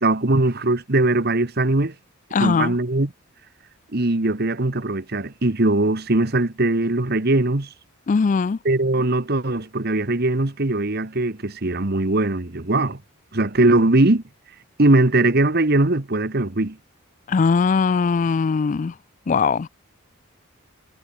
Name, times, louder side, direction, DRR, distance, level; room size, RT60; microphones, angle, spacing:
voice 1, 0.0-1.9 2.4-3.1 3.9-7.7 8.6-13.0 13.3-14.2 14.8-16.8, right 2 dB, 50° right, 1.4 m, -20 dB
voice 2, 2.3-2.7 8.1-8.6 17.3-18.9 19.3-19.7, left 5 dB, 35° left, 0.3 m, -20 dB
head